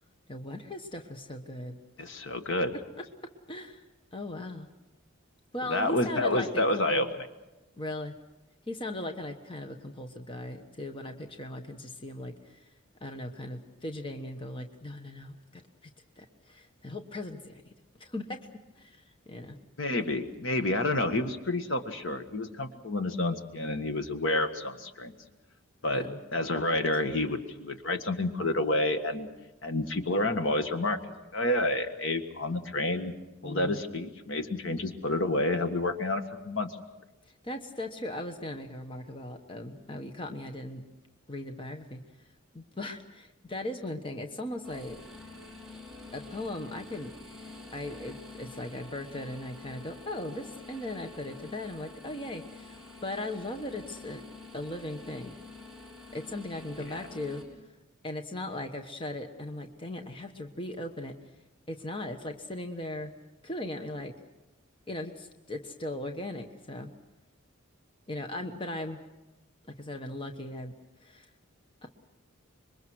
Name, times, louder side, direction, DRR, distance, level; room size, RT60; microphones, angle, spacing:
voice 1, 0.3-1.7 3.5-3.8 4.1-4.7 5.5-7.1 7.8-8.1 8.7-12.7 13.0-15.9 16.2-17.6 18.0-18.4 18.8-19.6 25.9-26.2 27.2-27.3 33.4-33.8 37.4-40.8 41.3-42.0 42.5-45.0 46.1-47.1 47.7-54.2 54.5-55.3 56.1-57.4 58.0-61.2 61.7-63.1 63.4-64.1 64.9-66.9 68.1-69.0 69.8-70.7 71.0-71.3 71.8-71.9, left 1 dB, 25° left, 5 dB, 1.2 m, -38 dB
voice 2, 2.0-2.8 5.6-7.1 19.8-25.1 25.8-29.3 29.6-31.0 31.3-33.1 33.4-36.7 56.9-57.1, left 2 dB, 60° left, 7 dB, 1.7 m, -29 dB
sound 1, 44.6-57.4, left 3 dB, ahead, 4.9 m, -47 dB
26.0 x 22.5 x 6.3 m, 1.0 s
head